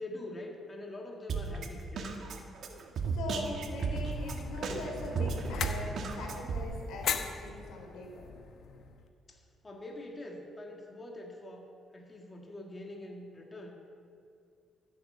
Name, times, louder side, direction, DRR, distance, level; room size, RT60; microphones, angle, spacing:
voice 1, 0.0-2.1 9.3-13.8, left 1 dB, 25° left, 0 dB, 1.8 m, -44 dB
Drum kit, 1.3-6.6, right 4 dB, 60° right, 1.4 m, -35 dB
voice 2, 3.1-8.3, left 1 dB, 85° left, 0 dB, 3.5 m, -41 dB
sound 1, 3.7-9.1, left 6 dB, 65° left, 1.0 m, -40 dB
14.5 x 7.8 x 6.7 m, 2.4 s
cardioid pair, 90°, 0 cm